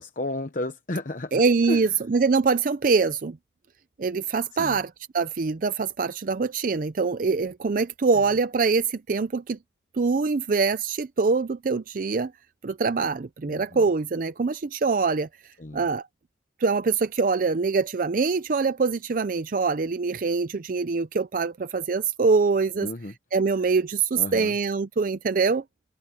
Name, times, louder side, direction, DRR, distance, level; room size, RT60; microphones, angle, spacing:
voice 1, 0.0-2.0 4.5-4.8 8.1-8.3 13.5-13.9 15.6-15.9 22.8-23.1 24.1-24.6, left 1 dB, 45° left, 1.0 m, -33 dB
voice 2, 1.3-3.4 4.0-9.6 9.9-12.3 12.6-16.1 16.6-22.9 23.3-25.6, right 4 dB, 50° right, 0.5 m, -24 dB
head